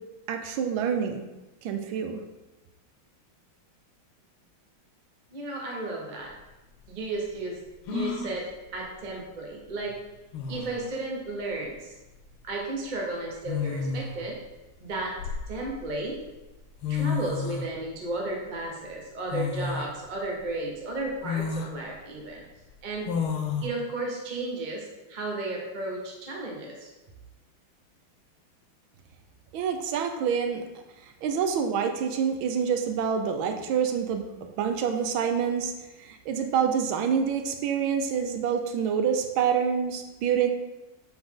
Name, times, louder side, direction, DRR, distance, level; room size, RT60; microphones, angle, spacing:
voice 1, 0.3-1.2 1.6-2.2 29.5-30.6 31.0-34.3 34.6-35.7 36.0-40.5, right 7 dB, 75° right, 6 dB, 1.5 m, -27 dB
voice 2, 5.3-6.3 6.9-7.6 7.9-10.0 10.5-11.9 12.4-14.4 14.8-15.2 15.5-16.2 16.9-22.4 22.8-23.1 23.6-26.9, right 2 dB, 35° right, -1 dB, 0.8 m, -34 dB
sound 1, 6.3-6.4 7.9-8.4 9.9-10.0 10.3-10.8 12.1-12.4 13.4-14.2 14.9-15.9 16.6-16.7 16.8-17.7 19.3-19.9 20.4-20.5 21.2-21.7 23.1-23.7, left 5 dB, 85° left, 1.6 m, -30 dB
7.8 x 4.2 x 3.7 m, 1.1 s
omnidirectional pair, 2.3 m